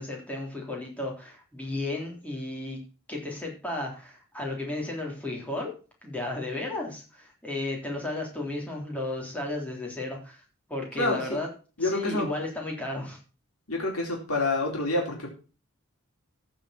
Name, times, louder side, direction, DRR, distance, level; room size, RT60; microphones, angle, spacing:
voice 1, 0.0-2.8 3.1-5.7 6.0-10.4 10.7-11.5 11.8-13.2, left 2 dB, 5° left, -1 dB, 3.6 m, -34 dB
voice 2, 10.9-11.4 11.8-12.3 13.7-15.3, left 2 dB, 85° left, -1 dB, 4.0 m, -27 dB
15.0 x 5.7 x 5.9 m, 0.35 s
head